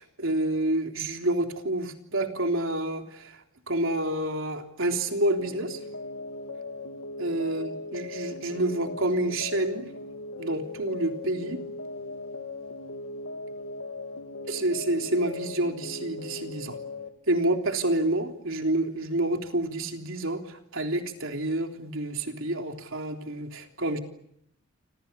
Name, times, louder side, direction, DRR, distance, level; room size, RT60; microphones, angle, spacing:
voice 1, 0.0-3.4 3.7-5.8 7.2-9.9 10.4-11.6 14.5-16.8 17.3-24.0, right 1 dB, 65° right, 4 dB, 3.5 m, -28 dB
sound 1, 5.4-17.1, left 2 dB, 90° left, 2.9 m, -38 dB
29.0 x 27.0 x 7.0 m, 0.74 s
head